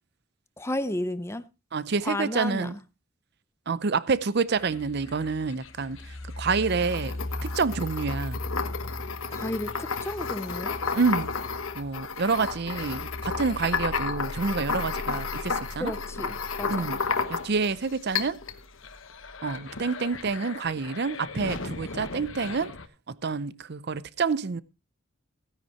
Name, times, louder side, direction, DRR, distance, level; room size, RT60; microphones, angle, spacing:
voice 1, 0.6-1.4 2.0-2.7 9.3-10.7 15.8-16.9, left 1 dB, 15° left, 0.7 m, -32 dB
voice 2, 1.7-2.8 3.7-6.0 6.4-7.1 7.4-8.4 10.9-11.3 11.8-15.9 16.7-17.0 17.3-18.4 19.4-22.7 23.2-24.6, right 4 dB, 50° right, 0.6 m, -28 dB
sound 1, 4.5-22.9, left 2 dB, 75° left, 1.3 m, -39 dB
sound 2, 6.7-17.7 18.1-18.6, left 5 dB, 90° left, 1.2 m, -32 dB
16.0 x 10.0 x 3.0 m
head